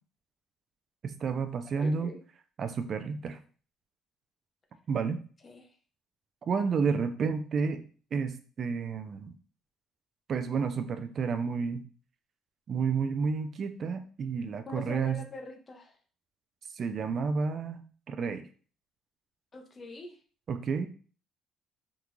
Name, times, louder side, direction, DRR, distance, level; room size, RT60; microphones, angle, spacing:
voice 1, 1.0-2.1 2.6-3.4 4.9-5.2 6.5-7.8 8.1-9.3 10.3-11.9 12.7-15.2 16.7-17.8 18.1-18.5 20.5-20.9, right 5 dB, 45° right, 8 dB, 0.3 m, -30 dB
voice 2, 1.8-2.2 5.4-5.8 14.7-16.0 19.5-20.2, left 2 dB, 30° left, 4 dB, 0.7 m, -43 dB
3.6 x 2.4 x 3.0 m, 0.40 s
cardioid pair, 100°, 0 cm